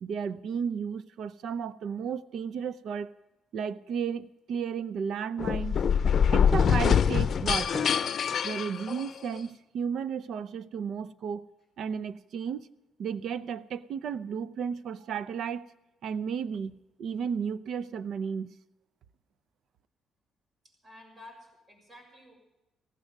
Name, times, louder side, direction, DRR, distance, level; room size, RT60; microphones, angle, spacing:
voice 1, 0.0-3.1 3.5-5.8 6.3-7.9 8.4-11.4 11.8-12.7 13.0-15.7 16.0-18.6, right 7 dB, 70° right, 0.7 m, -33 dB
sound 1, 5.4-9.4, left 7 dB, 55° left, 0.7 m, -24 dB
voice 2, 20.6-22.3, left 1 dB, 25° right, 6.5 m, -52 dB
16.5 x 15.5 x 5.3 m
cardioid pair, 90°, 0 cm